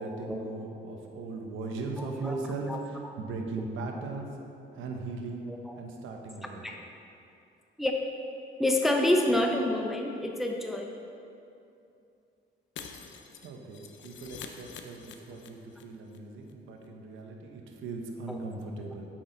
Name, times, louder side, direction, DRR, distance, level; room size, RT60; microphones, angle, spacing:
voice 1, 0.0-4.3 4.7-5.5 5.8-6.7 13.4-19.1, right 3 dB, 80° right, 2 dB, 0.9 m, -38 dB
voice 2, 2.0-2.4 2.7-2.8 5.5-5.8 6.6-6.8 7.8-8.0 8.6-10.9 18.3-18.4, left 1 dB, ahead, 1 dB, 0.6 m, -28 dB
Shatter, 12.8-15.8 16.1-16.2 16.5-16.6, left 6 dB, 70° left, 0.6 m, -46 dB
7.7 x 6.2 x 3.9 m, 2.7 s
cardioid pair, 90°, 20 cm